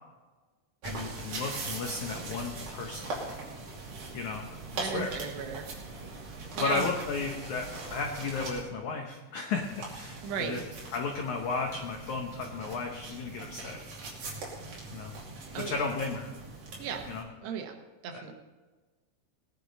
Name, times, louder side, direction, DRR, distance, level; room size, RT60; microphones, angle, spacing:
voice 1, 0.8-3.1 4.1-4.4 4.7-5.1 6.6-10.6 10.9-13.8 14.9-15.1 15.6-16.3 17.1-17.2 18.1-18.2, left 4 dB, 85° left, 2 dB, 1.7 m, -34 dB
sound 1, 0.8-8.6 9.6-17.2, right 3 dB, 50° right, 3.8 m, -41 dB
voice 2, 4.7-5.7 6.6-6.9 10.2-10.6 15.5-15.8 16.8-17.0 17.4-17.7 18.0-18.3, right 7 dB, 75° right, 3 dB, 3.2 m, -35 dB
20.0 x 10.0 x 4.1 m, 1.3 s
omnidirectional pair, 5.1 m